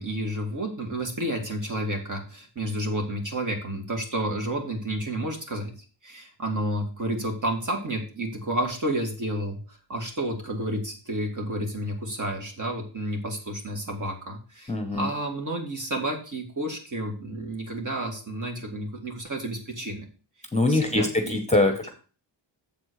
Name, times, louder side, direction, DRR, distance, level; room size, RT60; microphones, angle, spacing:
voice 1, 0.0-5.7 6.0-20.0 20.7-21.4, right 1 dB, 40° right, 3 dB, 2.3 m, -31 dB
voice 2, 14.7-15.1 20.5-21.9, left 2 dB, 15° left, 5 dB, 1.0 m, -23 dB
7.4 x 4.4 x 6.3 m, 0.37 s
wide cardioid pair, 115°, 46 cm